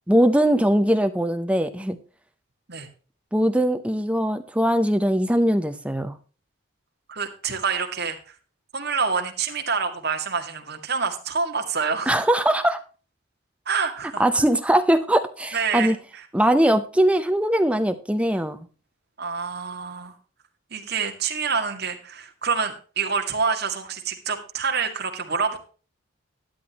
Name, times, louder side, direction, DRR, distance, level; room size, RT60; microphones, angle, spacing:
voice 1, 0.1-2.0 3.3-6.2 12.1-12.8 14.2-16.0 16.3-18.7, right 1 dB, 5° right, 9 dB, 0.8 m, -21 dB
voice 2, 7.1-8.3 8.7-12.2 13.7-14.3 15.5-15.9 19.2-20.2 20.7-25.6, right 5 dB, 50° right, 4 dB, 2.1 m, -27 dB
13.0 x 10.5 x 3.0 m, 0.36 s
head